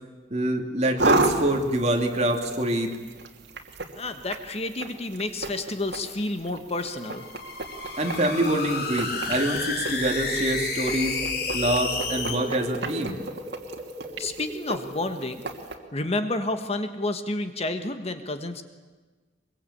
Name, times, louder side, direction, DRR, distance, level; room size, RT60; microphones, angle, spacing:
voice 1, 0.3-3.0 8.0-11.2 11.5-13.2, right 1 dB, 40° right, 3 dB, 2.7 m, -25 dB
sound 1, 1.0-15.7, right 2 dB, 70° right, 2.6 m, -33 dB
voice 2, 3.9-7.2 14.2-15.4 15.9-18.6, left 2 dB, 35° left, 8 dB, 1.4 m, -30 dB
sound 2, 6.9-12.4, left 4 dB, 65° left, 3.5 m, -31 dB
sound 3, 9.4-15.9, equal, 10° right, 3.3 m, -41 dB
23.0 x 23.0 x 8.6 m, 1.4 s
head